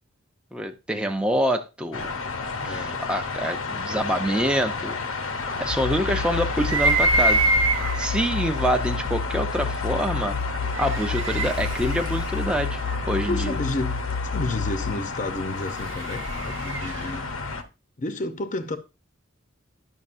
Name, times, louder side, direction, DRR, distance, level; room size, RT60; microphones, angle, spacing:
voice 1, 0.5-2.1 2.6-5.2 5.6-7.6 8.0-10.4 10.8-12.8 13.1-13.6, equal, 5° right, 0.6 m, -26 dB
sound 1, 1.9-17.6, left 4 dB, 90° left, 1.0 m, -32 dB
voice 2, 2.6-3.0 13.3-17.3 18.0-18.8, left 2 dB, 40° left, 0.7 m, -31 dB
sound 2, 5.7-14.9, left 4 dB, 75° left, 0.4 m, -30 dB
sound 3, 6.6-8.2 9.1-9.2 10.5-13.4 15.4-17.2, right 2 dB, 70° right, 0.8 m, -25 dB
11.0 x 6.3 x 2.6 m
head